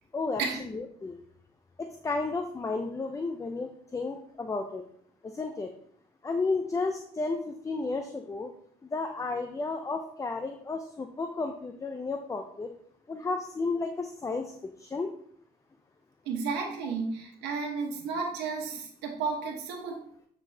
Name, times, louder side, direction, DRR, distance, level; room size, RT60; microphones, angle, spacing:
voice 1, 0.1-1.2 1.8-4.8 5.2-5.7 6.2-8.5 8.9-12.7 13.1-14.5 14.8-15.1, left 3 dB, 20° left, 6 dB, 0.5 m, -32 dB
voice 2, 16.2-20.0, right 4 dB, 90° right, 0 dB, 1.4 m, -32 dB
8.7 x 3.9 x 2.8 m, 0.66 s
cardioid pair, 110°, 17 cm